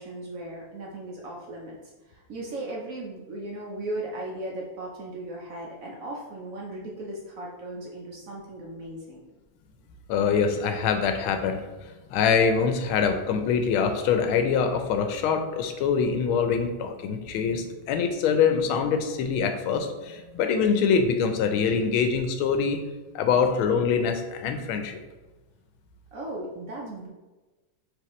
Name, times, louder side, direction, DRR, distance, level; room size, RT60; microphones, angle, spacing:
voice 1, 0.0-1.8 2.1-9.2 26.1-27.1, right 1 dB, 75° right, -2 dB, 0.7 m, -37 dB
voice 2, 10.1-11.6 12.1-22.8 23.1-25.0, left 6 dB, 85° left, 6 dB, 1.4 m, -24 dB
4.7 x 3.2 x 3.0 m, 1.2 s
omnidirectional pair, 2.2 m